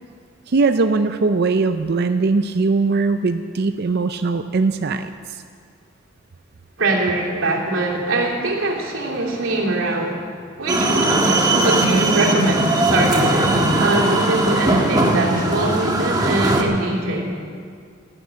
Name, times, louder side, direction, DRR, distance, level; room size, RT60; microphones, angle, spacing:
voice 1, 0.5-5.4, right 3 dB, 55° right, 9 dB, 0.5 m, -20 dB
voice 2, 6.8-17.3, right 2 dB, 90° right, -2 dB, 3.0 m, -23 dB
sound 1, 10.7-16.6, right 1 dB, 20° right, 1.4 m, -19 dB
13.0 x 12.0 x 7.6 m, 2.2 s
head